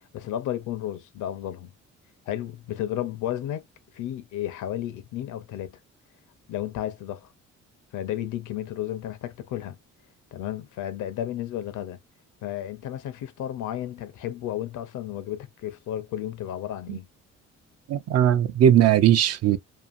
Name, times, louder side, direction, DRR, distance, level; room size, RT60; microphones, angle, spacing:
voice 1, 0.1-1.7 2.3-3.6 3.9-5.8 6.5-7.3 7.9-9.8 10.3-12.0 12.4-17.1, left 12 dB, 80° left, 0.6 m, -33 dB
voice 2, 17.9-19.6, right 10 dB, 55° right, 0.5 m, -19 dB
2.7 x 2.5 x 2.4 m
cardioid pair, 90°, 30 cm